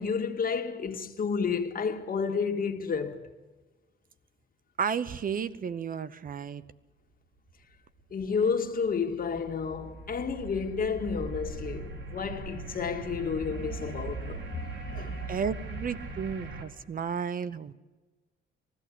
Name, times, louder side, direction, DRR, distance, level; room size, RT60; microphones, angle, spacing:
voice 1, 0.0-3.3 8.1-15.3, left 5 dB, 45° left, 2.0 m, -31 dB
voice 2, 4.8-6.6 15.3-17.7, right 6 dB, 45° right, 0.8 m, -33 dB
sound 1, 8.2-16.6, right 3 dB, 75° right, 3.4 m, -39 dB
20.5 x 14.5 x 10.0 m
cardioid pair, 90°, 20 cm